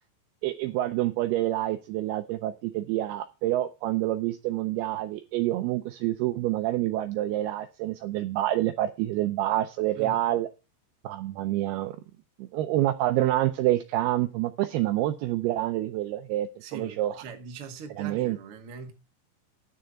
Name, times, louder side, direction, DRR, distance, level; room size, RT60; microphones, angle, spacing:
voice 1, 0.4-10.5 11.0-12.0 12.4-17.2 18.0-18.4, right 14 dB, 80° right, 2.3 m, -27 dB
voice 2, 16.6-18.9, right 5 dB, 60° right, 1.4 m, -41 dB
10.5 x 6.5 x 5.6 m
omnidirectional pair, 5.1 m